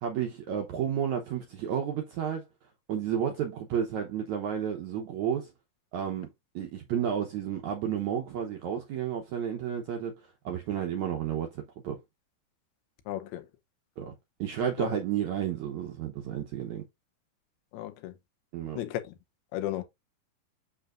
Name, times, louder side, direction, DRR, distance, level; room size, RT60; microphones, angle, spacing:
voice 1, 0.0-2.4 2.9-5.5 5.9-6.3 6.5-10.1 10.4-12.0 14.0-14.1 14.4-16.8 18.5-18.8, right 9 dB, 75° right, 1.7 m, -31 dB
voice 2, 13.1-13.5 14.8-14.9 17.7-18.1 18.8-19.1 19.5-19.8, left 14 dB, 85° left, 2.9 m, -34 dB
6.6 x 6.1 x 2.5 m
omnidirectional pair, 4.5 m